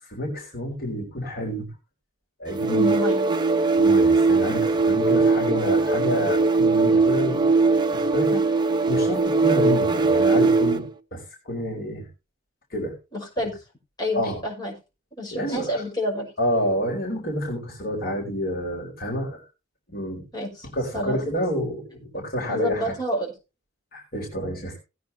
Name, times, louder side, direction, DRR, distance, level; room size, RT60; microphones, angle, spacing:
voice 1, 0.0-1.7 2.4-2.9 3.8-7.5 7.9-8.6 8.9-12.1 12.7-12.9 14.1-14.4 15.3-15.8 16.4-19.4 19.9-20.2 20.7-22.9 23.9-24.8, equal, 50° left, -1 dB, 4.5 m, -29 dB
sound 1, 2.5-10.9, right 3 dB, 20° right, 0.8 m, -20 dB
voice 2, 2.7-3.3 13.1-13.6 14.0-14.7 15.2-16.3 20.3-20.7 20.9-21.2 22.5-23.3, left 1 dB, 20° left, -2 dB, 6.0 m, -28 dB
18.5 x 9.4 x 2.8 m, 0.28 s
head